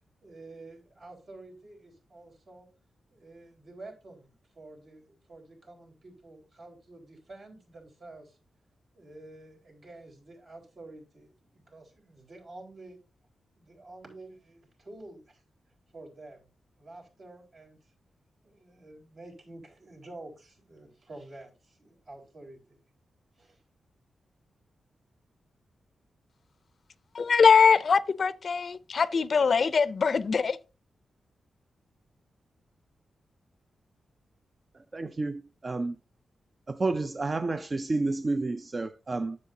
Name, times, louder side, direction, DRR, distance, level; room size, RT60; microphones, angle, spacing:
voice 1, 0.2-2.7 3.1-8.4 8.9-13.0 13.5-15.4 15.9-16.5 16.8-17.9 18.4-22.8 23.4-23.6, right 2 dB, 65° right, 4.0 m, -49 dB
voice 2, 27.1-30.6, left 5 dB, 55° left, 0.4 m, -22 dB
voice 3, 34.7-36.0 36.7-39.4, right 3 dB, 35° right, 0.4 m, -30 dB
9.7 x 7.6 x 2.7 m
cardioid pair, 75°, 0 cm